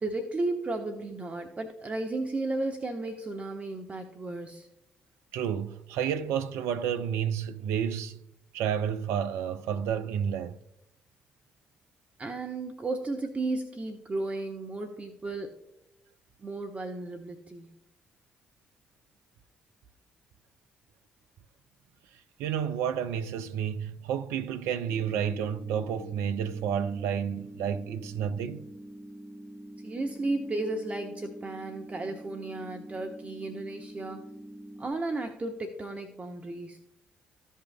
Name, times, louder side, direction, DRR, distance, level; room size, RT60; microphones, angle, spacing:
voice 1, 0.0-4.7 12.2-15.6 16.4-17.7 29.8-34.3 34.8-36.8, right 2 dB, 30° right, 1.0 m, -34 dB
voice 2, 5.3-8.2 8.5-10.6 22.4-28.7, right 8 dB, 65° right, 0.5 m, -30 dB
sound 1, 24.9-34.9, right 1 dB, 45° right, 2.2 m, -45 dB
15.0 x 5.5 x 2.2 m
figure-of-eight pair, 40°, 5 cm